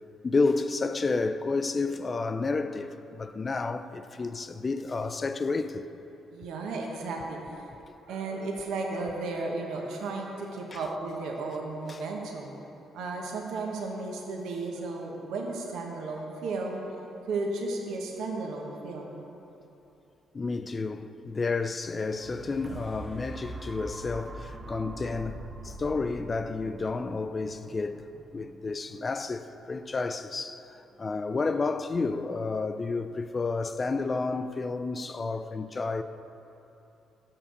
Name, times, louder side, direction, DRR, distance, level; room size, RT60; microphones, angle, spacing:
voice 1, 0.2-5.9 10.7-10.8 11.9-12.0 20.3-28.1 28.3-36.0, left 3 dB, 30° left, 0.4 m, -31 dB
voice 2, 6.3-7.4 8.0-12.5 12.9-16.8 17.3-19.2, right 3 dB, 80° right, 1.0 m, -34 dB
sound 1, 21.8-29.9 30.5-30.6, right 2 dB, 30° right, 0.6 m, -44 dB
6.5 x 5.7 x 6.8 m
cardioid pair, 90°, 0 cm